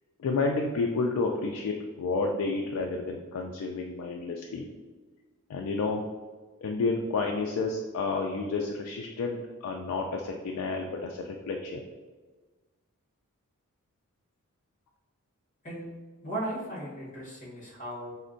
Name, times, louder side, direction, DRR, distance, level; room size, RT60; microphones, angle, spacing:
voice 1, 0.2-4.7 5.5-6.0 6.6-11.8, left 3 dB, 85° left, 2 dB, 0.3 m, -30 dB
voice 2, 16.2-18.1, right 1 dB, 35° left, -7 dB, 1.2 m, -36 dB
4.3 x 2.1 x 2.5 m, 1.3 s
head